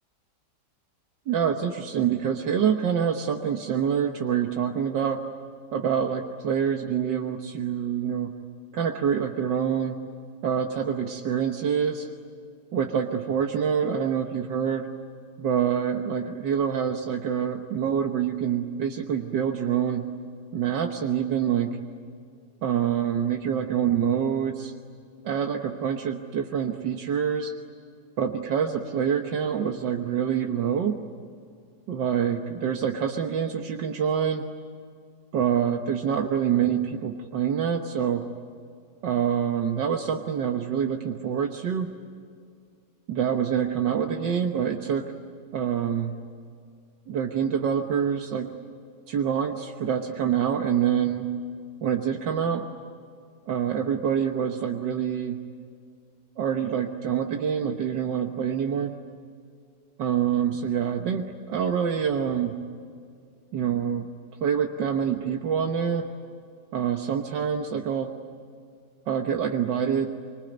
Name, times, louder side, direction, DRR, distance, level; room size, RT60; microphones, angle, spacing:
voice 1, 1.3-5.2 5.7-8.3 8.7-10.0 10.4-12.1 12.7-14.9 15.4-20.1 20.5-21.8 22.6-24.7 25.2-27.5 28.2-31.0 31.9-34.5 35.3-38.3 39.0-41.9 43.1-45.1 45.5-46.2 47.1-48.5 49.1-51.3 51.8-52.7 53.5-55.4 56.4-59.0 60.0-62.6 63.5-64.1 64.4-66.1 66.7-68.1 69.1-70.1, right 8 dB, 85° right, 3 dB, 1.9 m, -26 dB
25.5 x 25.0 x 9.3 m, 2.3 s
omnidirectional pair, 1.9 m